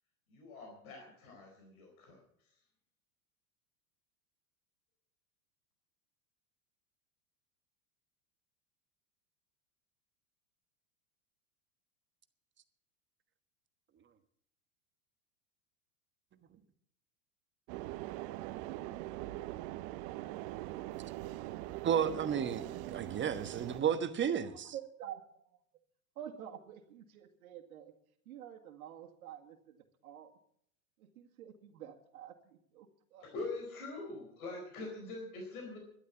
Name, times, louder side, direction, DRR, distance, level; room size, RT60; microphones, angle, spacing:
voice 1, 0.3-2.6 33.2-35.8, left 2 dB, 70° left, 2 dB, 4.5 m, -44 dB
sound 1, 17.7-23.8, right 16 dB, 50° right, 0.8 m, -42 dB
voice 2, 21.8-24.7, right 8 dB, 25° right, 10 dB, 1.2 m, -32 dB
voice 3, 24.4-25.6 26.2-27.9 28.3-30.4 31.0-33.3, right 10 dB, 75° right, 4 dB, 1.9 m, -49 dB
12.5 x 12.0 x 7.2 m, 0.68 s
hypercardioid pair, 100°, 44 cm